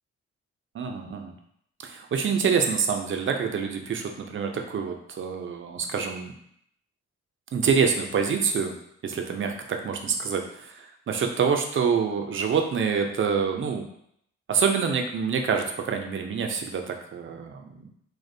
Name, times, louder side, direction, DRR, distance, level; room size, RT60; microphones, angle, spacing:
voice 1, 0.7-1.3 1.8-6.3 7.5-8.7 9.0-10.4 10.7-13.8 14.5-17.7, right 6 dB, 45° right, 4 dB, 0.4 m, -26 dB
2.5 x 2.1 x 2.5 m, 0.71 s
cardioid pair, 75°, 29 cm